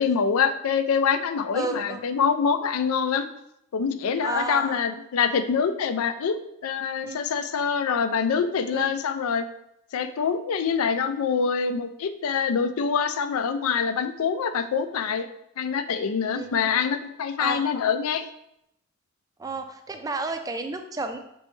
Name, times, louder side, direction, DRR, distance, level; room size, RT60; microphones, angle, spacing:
voice 1, 0.0-3.3 3.7-9.5 9.9-15.3 15.6-18.3, left 6 dB, 80° left, 10 dB, 0.4 m, -25 dB
voice 2, 1.5-2.0 4.2-4.8 7.0-7.2 8.7-8.9 16.3-16.7 17.4-17.6 19.4-21.2, right 3 dB, 15° right, 6 dB, 0.4 m, -32 dB
5.2 x 3.2 x 3.1 m, 0.80 s
head